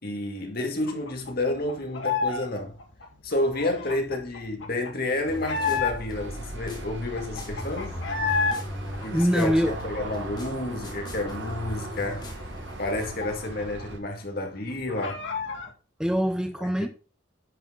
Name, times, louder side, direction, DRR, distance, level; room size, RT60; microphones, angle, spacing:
voice 1, 0.0-2.8 3.2-8.0 9.0-12.3 12.8-15.2 16.6-16.9, left 2 dB, 55° left, 2.2 m, -30 dB
sound 1, 0.9-2.5 2.7-6.3 6.7-6.8 7.0-8.6 8.9-10.6 11.0-11.1 11.4-13.8 14.1-14.2 14.5-15.7, left 5 dB, 80° left, 1.9 m, -31 dB
sound 2, 5.3-13.1, equal, 25° left, 2.6 m, -38 dB
Aircraft, 6.1-14.0, right 2 dB, 65° right, 1.6 m, -40 dB
voice 2, 9.1-9.8 16.0-16.9, equal, 5° right, 0.6 m, -23 dB
10.5 x 5.9 x 3.8 m
head